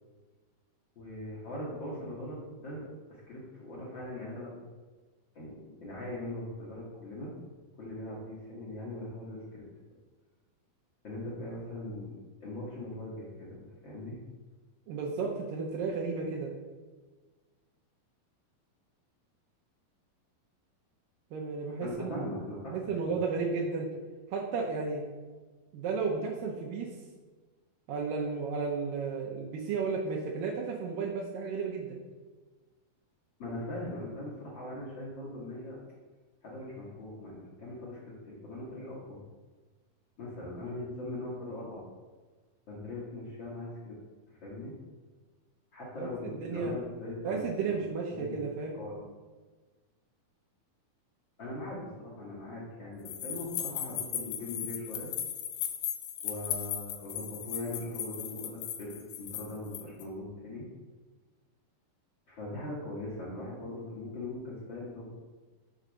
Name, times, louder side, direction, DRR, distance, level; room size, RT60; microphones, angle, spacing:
voice 1, 0.9-4.5 5.3-7.3 7.8-9.7 11.0-12.1 12.4-14.2 21.8-23.2 33.4-35.8 36.4-39.2 40.2-41.8 42.7-44.0 44.3-44.7 45.7-47.5 47.7-48.4 48.8-49.1 51.4-55.1 56.2-60.6 62.3-65.1, left 1 dB, 50° left, -7 dB, 1.4 m, -40 dB
voice 2, 14.9-16.5 21.3-22.3 22.7-23.9 24.3-25.0 25.7-26.9 27.9-32.0 46.0-46.7 47.2-48.8, right 4 dB, 75° right, -2 dB, 2.3 m, -33 dB
sound 1, 53.1-60.0, left 10 dB, 85° left, 1.7 m, -37 dB
6.7 x 4.0 x 6.1 m, 1.3 s
omnidirectional pair, 4.2 m